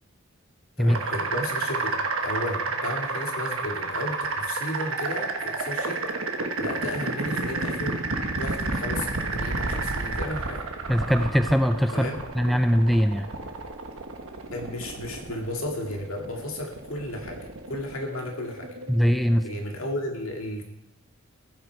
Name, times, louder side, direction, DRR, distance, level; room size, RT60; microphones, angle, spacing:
voice 1, 0.8-6.0 6.6-8.0 8.4-10.6 11.9-12.2 14.5-17.4 17.7-18.7 19.4-20.6, left 1 dB, 80° left, 1 dB, 2.1 m, -33 dB
sound 1, 0.9-19.6, right 3 dB, 80° right, 1.2 m, -31 dB
voice 2, 10.9-12.1 12.3-13.3 18.9-19.4, equal, ahead, 8 dB, 0.3 m, -21 dB
15.0 x 8.0 x 4.6 m, 0.84 s
head